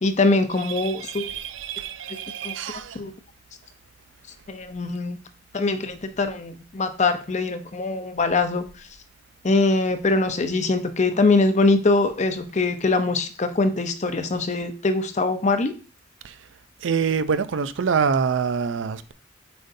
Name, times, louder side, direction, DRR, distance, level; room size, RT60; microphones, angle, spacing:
voice 1, 0.0-1.3 2.4-2.5 2.9-3.1 4.5-5.2 5.5-8.6 9.4-15.7, left 3 dB, 40° left, 0.7 m, -22 dB
voice 2, 1.1-2.9 16.8-19.1, right 6 dB, 80° right, 0.5 m, -25 dB
7.7 x 5.2 x 2.7 m
head